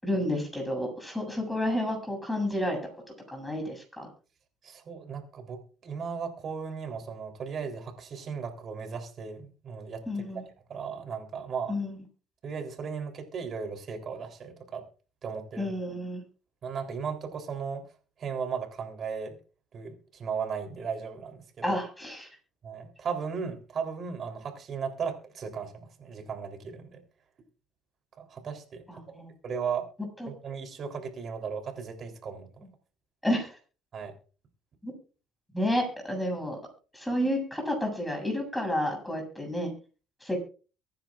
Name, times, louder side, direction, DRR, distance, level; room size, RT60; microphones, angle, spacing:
voice 1, 0.0-2.8 3.3-4.1 10.1-10.4 11.7-12.0 15.6-16.2 21.6-22.3 28.9-29.3 30.2-30.3 33.2-33.6 34.8-34.9 35.5-36.6 36.9-39.7 40.2-40.4, left 1 dB, 5° left, 2 dB, 7.6 m, -30 dB
voice 2, 4.6-10.0 10.3-10.4 10.7-11.7 12.4-14.8 15.2-15.7 16.6-17.8 18.2-19.4 19.7-21.8 22.6-27.0 28.2-28.9 29.4-29.9 30.3-32.6 33.9-34.1, right 6 dB, 45° right, 4 dB, 3.5 m, -36 dB
23.5 x 10.5 x 2.5 m, 0.37 s
cardioid pair, 110°, 0 cm